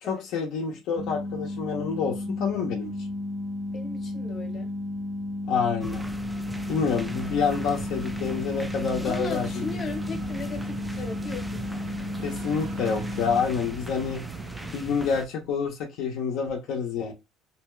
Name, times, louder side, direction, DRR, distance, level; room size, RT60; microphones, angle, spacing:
voice 1, 0.0-2.9 5.5-6.0 6.7-9.7 12.2-14.2 14.7-17.1, left 6 dB, 75° left, 0.6 m, -28 dB
sound 1, 1.0-13.4, left 2 dB, 55° right, 0.8 m, -33 dB
voice 2, 3.7-4.8 9.0-11.8, left 3 dB, 40° left, 0.9 m, -37 dB
sound 2, 5.8-15.3, right 1 dB, 5° right, 0.3 m, -39 dB
sound 3, 6.5-14.7, right 7 dB, 80° right, 0.4 m, -42 dB
2.7 x 2.2 x 3.1 m
cardioid pair, 115°, 0 cm